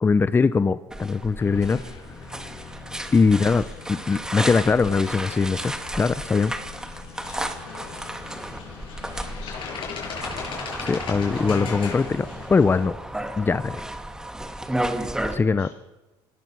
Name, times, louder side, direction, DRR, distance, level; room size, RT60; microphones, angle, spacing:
voice 1, 0.0-1.8 3.1-6.5 10.8-13.0 13.4-13.8 15.3-15.7, left 4 dB, 20° left, 14 dB, 0.7 m, -21 dB
sound 1, 0.9-12.4, left 8 dB, 35° left, 6.5 m, -48 dB
sound 2, 0.9-15.4, right 1 dB, 5° right, 2.0 m, -33 dB
sound 3, 1.4-12.9, left 5 dB, 55° left, 6.6 m, -40 dB
voice 2, 3.1-3.8 7.2-8.2 9.3-10.3 15.3-15.7, left 5 dB, 85° left, 3 dB, 6.6 m, -48 dB
25.5 x 18.0 x 6.3 m, 1.1 s
cardioid pair, 100°, 10 cm